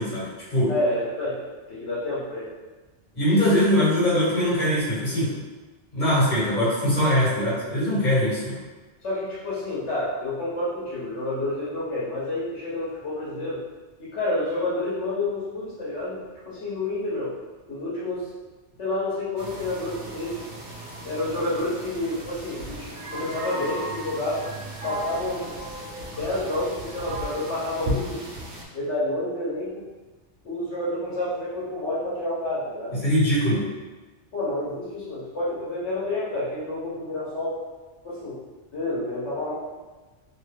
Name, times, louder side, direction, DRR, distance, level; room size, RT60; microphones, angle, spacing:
voice 1, 0.0-0.7 3.1-5.3 5.9-8.6 33.0-33.6, equal, 45° left, -10 dB, 1.5 m, -22 dB
voice 2, 0.7-1.4 1.7-2.5 9.0-13.6 14.0-17.4 17.7-18.3 18.8-20.4 21.0-24.4 24.8-25.7 26.1-28.3 28.7-29.9 30.4-33.0 34.3-37.6 38.0-38.4 38.7-39.5, left 1 dB, 80° left, -9 dB, 1.1 m, -29 dB
sound 1, 19.4-28.6, right 1 dB, 85° right, 1.0 m, -35 dB
2.8 x 2.2 x 3.2 m, 1.2 s
omnidirectional pair, 1.2 m